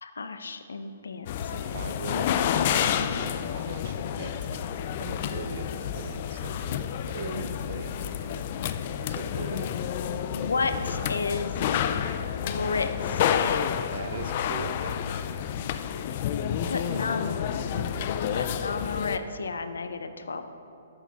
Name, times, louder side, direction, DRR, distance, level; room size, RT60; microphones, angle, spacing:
voice 1, 0.0-2.0 10.3-11.5 12.4-13.7 16.6-17.4 18.3-20.4, left 4 dB, 85° left, 9 dB, 0.6 m, -32 dB
sound 1, 1.3-19.2, left 9 dB, 40° left, 0.3 m, -29 dB
voice 2, 1.5-4.6 5.0-5.7 5.9-8.4 9.0-9.7 10.1-10.2 13.9-15.2 16.5-17.2 17.5-18.1, right 5 dB, 55° right, 8 dB, 0.7 m, -40 dB
8.9 x 6.7 x 4.1 m, 2.9 s
hypercardioid pair, 150°, 0 cm